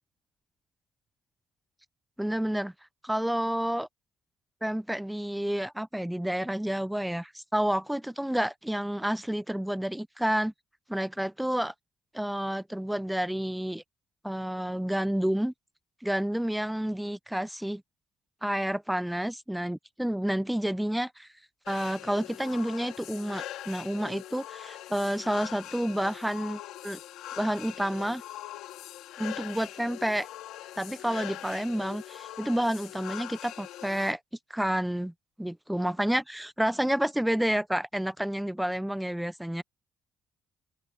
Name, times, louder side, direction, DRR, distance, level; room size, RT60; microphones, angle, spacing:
voice 1, 2.2-2.7 3.0-3.9 4.6-10.5 10.9-11.7 12.1-13.8 14.2-15.5 16.0-17.8 18.4-21.3 21.7-27.0 27.4-28.2 29.2-30.3 30.8-34.2 34.5-35.1 35.4-39.6, right 1 dB, 5° right, 0.8 m, -30 dB
sound 1, 21.7-34.1, left 14 dB, 85° left, 3.2 m, -42 dB
open air
cardioid pair, 90°, 0 cm